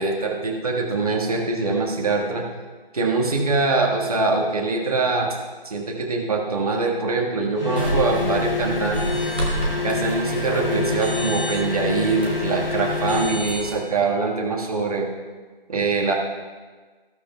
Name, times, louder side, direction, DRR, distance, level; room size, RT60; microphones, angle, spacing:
voice 1, 0.0-2.4 2.9-5.3 5.6-9.3 9.8-15.1 15.7-16.1, right 3 dB, 40° right, 0 dB, 1.6 m, -23 dB
sound 1, 7.6-13.5, left 4 dB, 70° left, 1.5 m, -27 dB
sound 2, 7.8-13.8, equal, 10° right, 0.6 m, -30 dB
19.0 x 11.5 x 2.3 m, 1.4 s
figure-of-eight pair, 155°, 30 cm